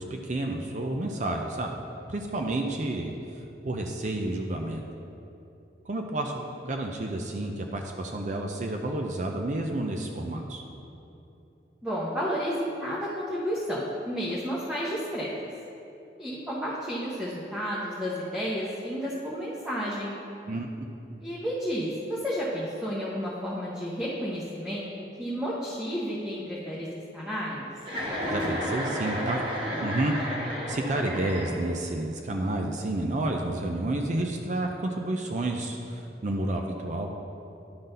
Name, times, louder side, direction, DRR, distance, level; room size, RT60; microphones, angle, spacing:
voice 1, 0.0-1.7 2.1-3.2 3.6-4.8 5.9-10.6 20.5-20.7 28.3-29.4 29.8-30.1 30.7-37.1, right 1 dB, 45° right, 3 dB, 0.5 m, -30 dB
voice 2, 11.8-15.3 16.2-20.2 21.2-24.9 25.2-26.9 27.1-27.6, equal, 5° right, -9 dB, 0.9 m, -31 dB
Chuckle chortle, 27.8-31.9, equal, 30° right, 1.1 m, -32 dB
10.5 x 3.9 x 5.4 m, 2.8 s
head